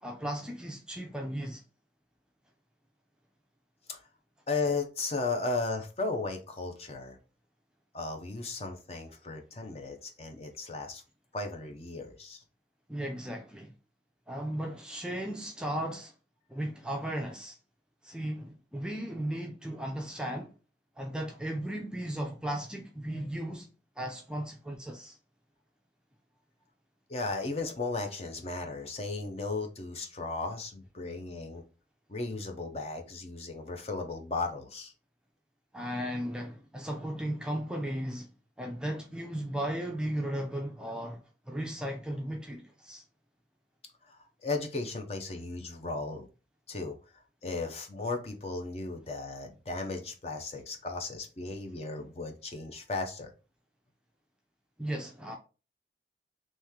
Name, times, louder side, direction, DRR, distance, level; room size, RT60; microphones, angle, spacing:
voice 1, 0.0-1.6 12.9-13.7 14.3-16.1 16.5-17.6 18.0-20.5 21.0-23.7 24.0-25.2 35.7-38.3 38.6-43.0 54.8-55.4, right 1 dB, 5° right, 0.4 m, -36 dB
voice 2, 4.5-7.2 7.9-11.0 11.3-12.4 27.1-31.6 32.1-34.9 44.1-46.2 46.7-47.0 47.4-53.3, left 3 dB, 35° left, 0.7 m, -35 dB
3.2 x 3.1 x 3.6 m
head